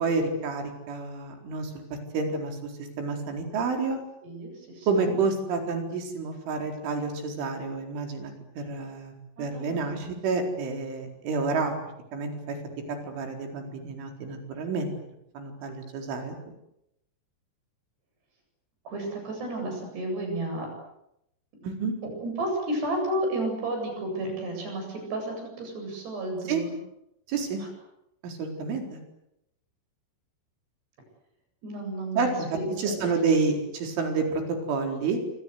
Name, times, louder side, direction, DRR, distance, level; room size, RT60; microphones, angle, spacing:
voice 1, 0.0-4.0 4.9-11.7 12.1-12.6 12.9-14.9 15.3-16.4 21.6-21.9 26.5-26.6 27.3-27.6 28.2-29.0 32.2-35.2, right 4 dB, 75° right, 4 dB, 6.7 m, -29 dB
voice 2, 4.2-5.1 9.4-10.1 18.9-20.7 22.2-26.7 27.6-27.7 31.6-33.1, right 1 dB, 55° right, 3 dB, 10.0 m, -32 dB
26.5 x 26.5 x 8.2 m, 0.82 s
omnidirectional pair, 5.6 m